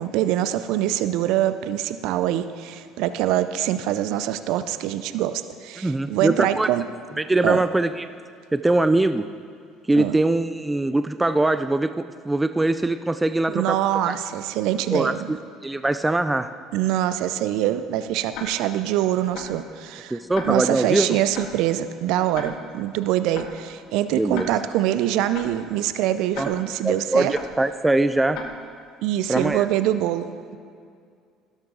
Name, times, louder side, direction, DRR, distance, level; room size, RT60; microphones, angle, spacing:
voice 1, 0.0-6.8 7.4-7.6 10.0-10.2 13.5-15.2 16.7-20.2 20.4-27.3 29.0-30.3, right 12 dB, 75° right, 12 dB, 0.4 m, -24 dB
voice 2, 5.8-6.7 7.2-8.1 8.5-9.3 9.9-13.8 14.1-14.2 14.9-15.1 15.6-16.5 20.1-21.1 24.1-24.5 26.4-26.5 26.8-28.4 29.3-29.7, right 2 dB, 15° right, 11 dB, 0.4 m, -22 dB
Tick-tock, 18.3-18.5 19.3-19.5 20.3-20.5 21.3-21.5 22.3-22.5 23.3-23.5 24.3-24.5 25.3-25.5 26.3-26.5 27.3-27.5 28.3-28.5 29.3-29.5, left 6 dB, 70° left, 1.3 m, -35 dB
12.0 x 11.5 x 3.8 m, 2.3 s
supercardioid pair, 80°, 0 cm